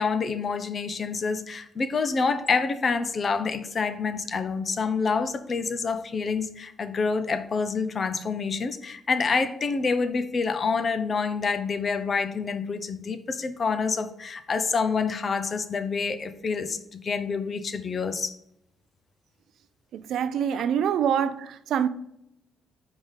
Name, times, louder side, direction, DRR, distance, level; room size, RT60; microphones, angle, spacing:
voice 1, 0.0-18.3, left 4 dB, 40° left, 0.6 m, -27 dB
voice 2, 20.1-21.9, right 8 dB, 75° right, 0.4 m, -25 dB
5.0 x 3.6 x 5.5 m
cardioid pair, 90°, 0 cm